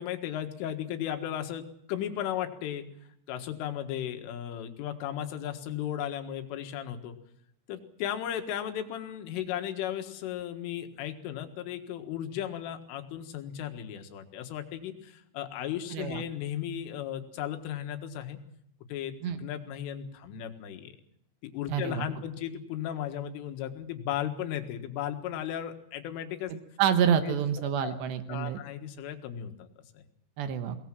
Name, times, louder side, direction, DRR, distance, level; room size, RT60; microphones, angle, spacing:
voice 1, 0.0-2.9 3.3-7.2 7.7-18.4 18.9-20.9 21.4-26.5 27.3-28.0 28.3-29.7 29.9-30.0, left 10 dB, 90° left, 6 dB, 4.2 m, -35 dB
voice 2, 15.9-16.2 19.2-19.4 21.7-22.1 26.5-28.6 30.4-30.8, right 8 dB, 70° right, 9 dB, 3.1 m, -28 dB
23.0 x 19.0 x 7.6 m, 0.72 s
omnidirectional pair, 5.5 m